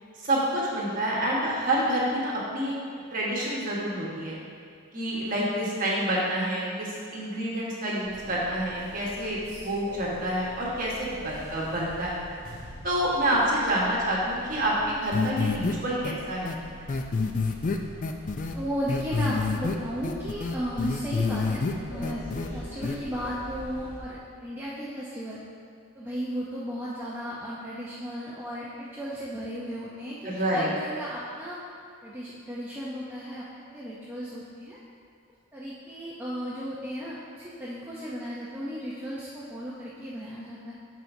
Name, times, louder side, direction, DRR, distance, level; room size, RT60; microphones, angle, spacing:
voice 1, 0.1-2.8 3.1-4.4 4.9-9.4 9.6-12.3 12.8-16.5 30.2-30.7, right 1 dB, 40° right, -5 dB, 1.3 m, -28 dB
sound 1, 8.0-24.0, equal, 75° left, 1.7 m, -44 dB
sound 2, 15.1-15.7 16.0-16.1 16.5-16.6 16.9-18.5 18.9-19.7 20.0-21.7 22.0-22.5 22.8-23.0, left 4 dB, 35° left, 0.3 m, -27 dB
voice 2, 18.5-22.3 22.5-25.4 26.0-31.6 32.0-34.8 35.5-40.7, equal, 10° right, -7 dB, 0.6 m, -35 dB
12.0 x 4.5 x 2.7 m, 2.2 s
head